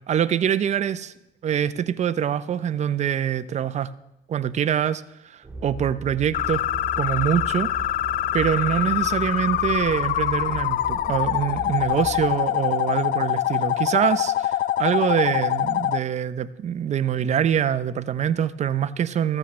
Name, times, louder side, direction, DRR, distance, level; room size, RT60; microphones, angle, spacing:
voice 1, 0.1-1.1 1.4-3.9 4.3-6.6 7.0-7.7 8.3-19.4, right 9 dB, 40° right, 15 dB, 0.6 m, -24 dB
sound 1, 5.4-12.4, right 1 dB, 15° right, 1.7 m, -37 dB
sound 2, 6.3-16.0, left 13 dB, 55° left, 0.4 m, -24 dB
15.5 x 14.0 x 3.2 m, 0.90 s
cardioid pair, 110°, 17 cm